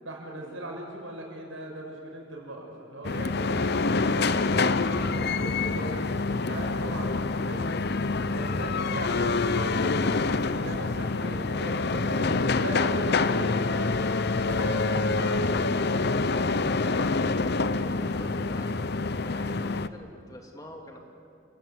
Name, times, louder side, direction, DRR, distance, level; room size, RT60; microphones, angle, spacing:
voice 1, 0.0-7.8 8.3-9.8 10.6-14.1 14.5-15.7, right 1 dB, 85° right, 0 dB, 6.8 m, -39 dB
sound 1, 3.0-19.9, left 3 dB, 55° left, 0.8 m, -26 dB
voice 2, 16.8-19.0 19.2-21.0, left 1 dB, 20° left, 1 dB, 2.8 m, -46 dB
29.5 x 18.0 x 8.3 m, 2.8 s
head